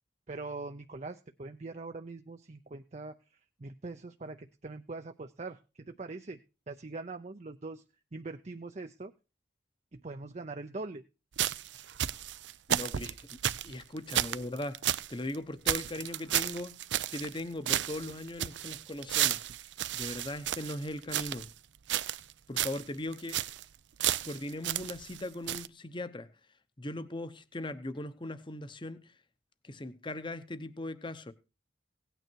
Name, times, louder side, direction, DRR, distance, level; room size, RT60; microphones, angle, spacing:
voice 1, 0.3-3.2 3.6-6.4 6.7-7.8 8.1-9.1 9.9-11.0, right 3 dB, 40° right, 0.6 m, -42 dB
sound 1, 11.4-15.1 15.3-15.4 15.7-17.4 17.7-21.5 21.9-22.3 22.6-22.8 23.1-23.6 24.0-25.2 25.5-25.7, right 11 dB, 85° right, 0.6 m, -32 dB
voice 2, 12.7-13.4 13.6-14.8 15.1-16.8 17.1-19.4 19.9-21.5 22.5-23.4 24.2-26.3 26.8-29.1 29.6-31.3, left 1 dB, 25° left, 0.9 m, -39 dB
17.0 x 9.2 x 4.6 m
head